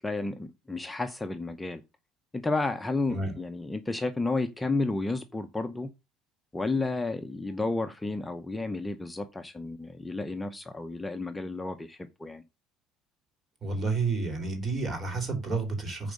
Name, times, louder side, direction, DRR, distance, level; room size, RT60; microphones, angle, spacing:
voice 1, 0.0-1.8 2.3-5.9 6.5-12.4, left 2 dB, 10° left, 0.7 m, -32 dB
voice 2, 13.6-16.1, right 3 dB, 30° right, 3.9 m, -30 dB
9.0 x 4.7 x 6.4 m
cardioid pair, 110°, 0 cm